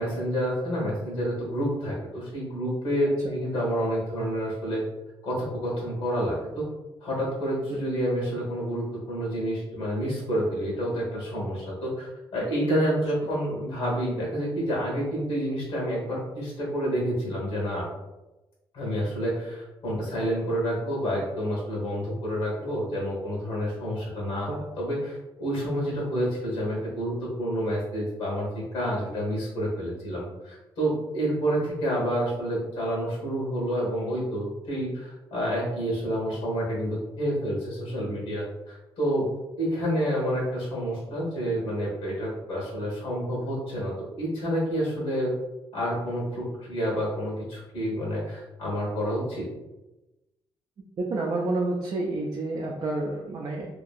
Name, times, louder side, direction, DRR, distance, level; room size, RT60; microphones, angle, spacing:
voice 1, 0.0-4.8 5.2-6.6 7.0-17.9 18.7-39.3 39.6-45.3 45.7-49.5, equal, 85° left, -4 dB, 1.2 m, -29 dB
voice 2, 51.0-53.7, right 2 dB, 45° right, -2 dB, 0.4 m, -29 dB
2.9 x 2.6 x 2.4 m, 1.0 s
wide cardioid pair, 155°, 10 cm